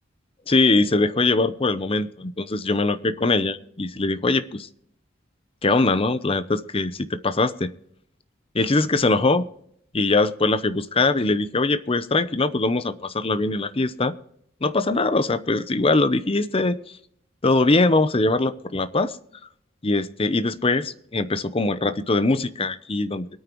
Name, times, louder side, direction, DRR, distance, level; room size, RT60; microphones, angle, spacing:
voice 1, 0.5-4.7 5.6-7.7 8.5-9.4 9.9-14.1 14.6-16.8 17.4-19.2 19.8-23.3, left 2 dB, 30° left, 12 dB, 0.7 m, -22 dB
24.0 x 9.1 x 3.1 m, 0.70 s
head